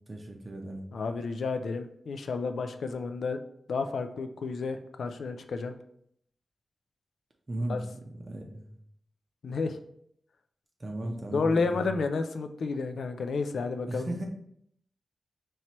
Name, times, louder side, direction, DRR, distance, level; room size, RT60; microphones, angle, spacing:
voice 1, 0.1-0.9 7.5-7.8 8.1-8.7 10.8-11.9 13.9-14.3, right 1 dB, 30° right, 1 dB, 0.6 m, -36 dB
voice 2, 0.9-3.4 3.7-5.7 7.7-7.8 9.4-9.8 11.0-14.3, left 4 dB, 85° left, 7 dB, 0.3 m, -31 dB
4.3 x 3.1 x 2.9 m, 0.71 s
wide cardioid pair, 115°, 0 cm